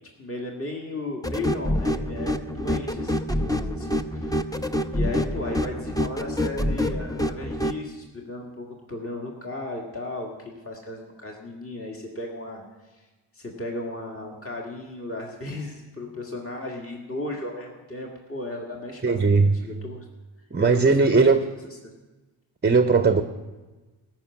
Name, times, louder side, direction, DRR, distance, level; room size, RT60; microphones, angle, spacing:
voice 1, 0.2-4.5 4.9-13.1 13.3-19.3 19.6-20.1 20.6-21.4, left 2 dB, 25° left, -1 dB, 1.9 m, -35 dB
sound 1, 1.2-7.8, left 1 dB, 5° left, 0.7 m, -27 dB
voice 2, 19.0-19.7 20.5-21.4 22.6-23.2, right 4 dB, 20° right, 9 dB, 0.7 m, -19 dB
14.0 x 6.1 x 8.4 m, 1.2 s
cardioid pair, 40°, 50 cm